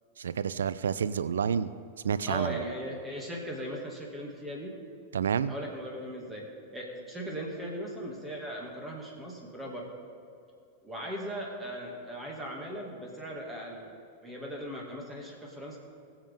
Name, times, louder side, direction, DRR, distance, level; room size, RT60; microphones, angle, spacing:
voice 1, 0.2-1.7 2.0-2.6 5.1-5.5, right 7 dB, 65° right, 14 dB, 0.4 m, -29 dB
voice 2, 2.3-4.8 5.5-6.5 6.7-9.9 10.8-13.9 14.2-15.8, equal, 10° right, -1 dB, 2.3 m, -38 dB
21.5 x 7.4 x 3.7 m, 2.5 s
figure-of-eight pair, 90°, 0 cm